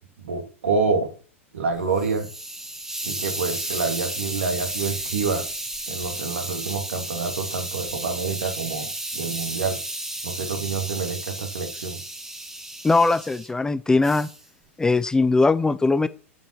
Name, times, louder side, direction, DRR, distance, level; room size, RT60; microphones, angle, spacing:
voice 1, 0.2-1.1 1.5-2.3 3.0-5.4 5.9-9.8 10.2-12.0, right 4 dB, 70° right, 4 dB, 2.8 m, -27 dB
Hiss, 1.7-13.5 14.0-14.4, right 1 dB, 5° right, 2.0 m, -33 dB
voice 2, 12.8-14.3 14.8-16.1, left 3 dB, 10° left, 15 dB, 0.6 m, -20 dB
9.0 x 8.7 x 4.5 m, 0.38 s
figure-of-eight pair, 95°, 7 cm